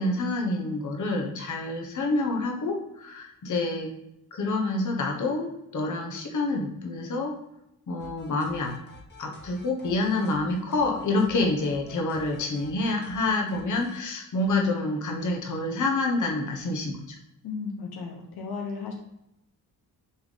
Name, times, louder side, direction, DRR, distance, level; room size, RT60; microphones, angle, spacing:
voice 1, 0.0-3.9 4.3-7.3 7.9-8.7 9.2-17.2, left 2 dB, 50° left, 1 dB, 1.3 m, -27 dB
sound 1, 8.0-14.0, left 2 dB, 30° left, 1.5 m, -49 dB
voice 2, 17.4-18.9, left 5 dB, 80° left, 1 dB, 1.2 m, -35 dB
6.7 x 3.6 x 4.1 m, 0.84 s
cardioid pair, 95°, 37 cm